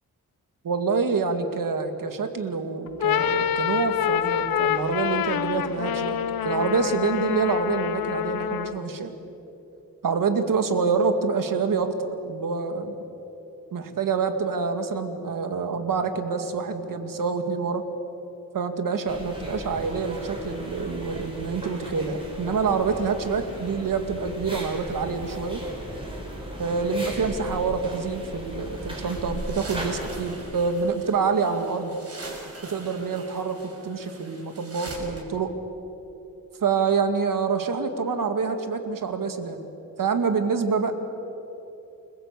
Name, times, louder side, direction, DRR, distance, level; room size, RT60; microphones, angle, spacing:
voice 1, 0.6-6.2 6.4-9.1 10.0-12.9 13.7-17.8 18.5-25.6 26.6-31.9 32.6-33.6 33.8-35.5 36.6-39.6 40.0-40.9, right 5 dB, 65° right, 7 dB, 2.3 m, -26 dB
sound 1, 2.9-8.9, left 9 dB, 85° left, 1.0 m, -26 dB
sound 2, 19.1-30.3, equal, 15° right, 5.8 m, -37 dB
sound 3, 28.6-35.2, right 2 dB, 45° right, 5.8 m, -43 dB
29.0 x 21.5 x 8.4 m, 3.0 s
wide cardioid pair, 160°, 35 cm